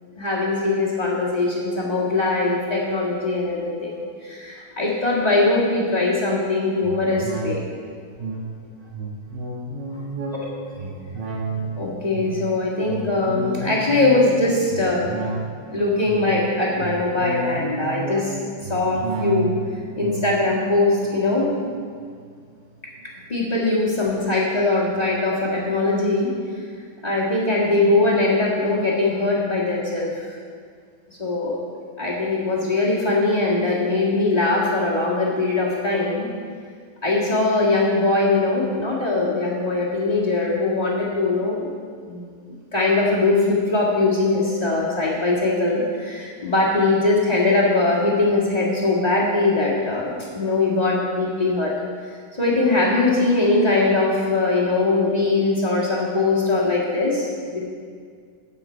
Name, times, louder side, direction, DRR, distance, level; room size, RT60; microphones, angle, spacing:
voice 1, 0.2-7.7 11.8-15.2 15.7-18.4 18.6-19.5 20.0-21.7 23.3-26.3 27.0-30.3 31.2-31.6 32.0-36.3 37.0-41.7 42.1-42.3 42.7-51.7 52.4-57.6, left 2 dB, 25° left, -6 dB, 0.9 m, -21 dB
sound 1, 6.8-22.6 23.0-23.1, right 2 dB, 80° right, 3.3 m, -32 dB
16.5 x 7.4 x 4.5 m, 2.1 s
omnidirectional pair, 4.0 m